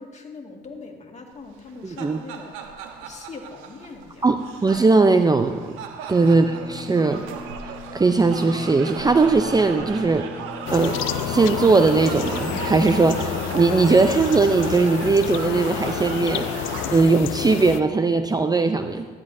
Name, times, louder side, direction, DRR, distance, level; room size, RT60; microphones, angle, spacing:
voice 1, 0.0-2.8 3.0-4.3, left 4 dB, 35° left, 2 dB, 2.1 m, -41 dB
sound 1, 1.6-17.0, right 6 dB, 80° right, 1.1 m, -36 dB
voice 2, 1.8-2.2 4.2-4.4 4.6-5.7 6.1-7.2 7.9-10.3 10.7-19.1, right 3 dB, 20° right, 8 dB, 0.6 m, -19 dB
sound 2, 6.2-18.1, left 2 dB, 10° left, 0.8 m, -41 dB
sound 3, 10.7-17.8, left 14 dB, 70° left, 0.5 m, -29 dB
14.5 x 12.0 x 2.7 m, 1.5 s
hypercardioid pair, 65°, 21 cm